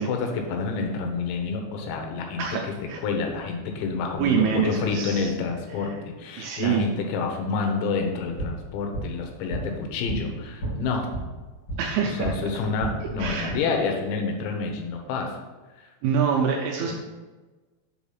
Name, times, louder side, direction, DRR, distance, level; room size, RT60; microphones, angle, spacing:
voice 1, 0.0-2.5 3.0-11.1 12.1-15.3 15.8-15.9 16.9-17.0, left 4 dB, 90° left, 3 dB, 3.3 m, -28 dB
voice 2, 2.4-3.0 4.2-5.3 5.8-5.9 6.4-6.9 11.8-12.3 13.2-13.5 16.0-16.9, right 7 dB, 80° right, 1 dB, 2.4 m, -25 dB
sound 1, 8.2-12.4 12.7-13.5, right 2 dB, 35° left, 3.0 m, -34 dB
6.3 x 4.9 x 5.8 m, 1.2 s
omnidirectional pair, 5.1 m